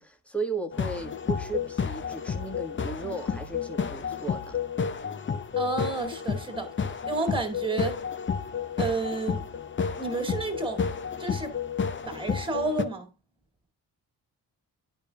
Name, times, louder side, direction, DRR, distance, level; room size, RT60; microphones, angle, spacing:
voice 1, 0.0-4.6, right 3 dB, 5° left, 1.4 m, -35 dB
sound 1, 0.7-12.8, left 6 dB, 30° left, 0.7 m, -31 dB
voice 2, 5.6-6.7 7.1-8.0 8.8-9.5 10.0-10.9 11.2-11.6 12.1-13.1, right 3 dB, 15° right, 2.0 m, -30 dB
10.0 x 5.2 x 2.2 m
cardioid pair, 85°, 39 cm